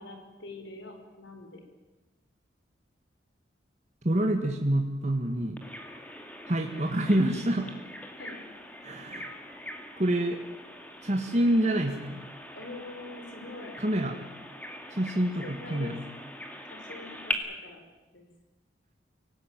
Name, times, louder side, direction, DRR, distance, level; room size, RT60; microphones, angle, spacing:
voice 1, 0.0-1.6 8.2-8.4 12.5-13.8 15.4-16.0 16.7-17.3 17.6-17.8 18.1-18.3, left 2 dB, 85° left, 4 dB, 5.2 m, -44 dB
voice 2, 4.0-5.6 6.5-7.7 8.8-9.3 10.0-10.4 11.0-12.2 13.8-14.1 14.9-16.0, right 1 dB, 40° right, 3 dB, 1.8 m, -27 dB
Bird vocalization bird call bird song, 5.6-17.3, left 1 dB, 10° left, 2.2 m, -42 dB
24.5 x 18.0 x 9.1 m, 1.1 s
head